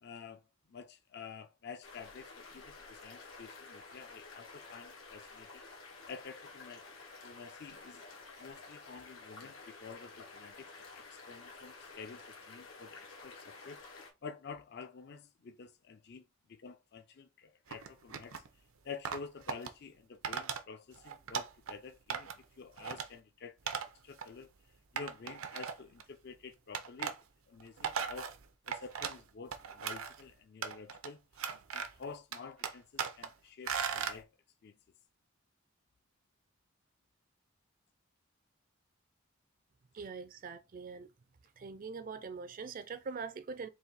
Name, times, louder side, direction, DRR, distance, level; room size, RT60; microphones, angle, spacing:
voice 1, 0.0-5.6 6.1-6.9 7.2-8.0 8.4-16.2 16.5-18.4 18.8-23.7 24.0-24.5 24.9-27.2 27.5-28.3 28.7-31.4 31.7-34.3 34.6-34.8, left 5 dB, 50° left, 0.4 m, -49 dB
sound 1, 1.8-14.1, left 3 dB, 90° left, 1.4 m, -52 dB
sound 2, 17.7-18.5 19.0-19.7 20.2-20.6 20.9-21.7 22.1-22.4 22.8-23.1 23.7-23.9 24.2-24.3 25.0-26.0 26.7-27.2 27.6-29.2 29.5-30.2 30.6-31.1 31.4-32.0 32.3-33.3 33.7-34.2, right 7 dB, 85° right, 0.6 m, -38 dB
voice 2, 39.9-41.1 41.6-43.7, right 5 dB, 40° right, 0.4 m, -43 dB
4.0 x 2.6 x 4.1 m
head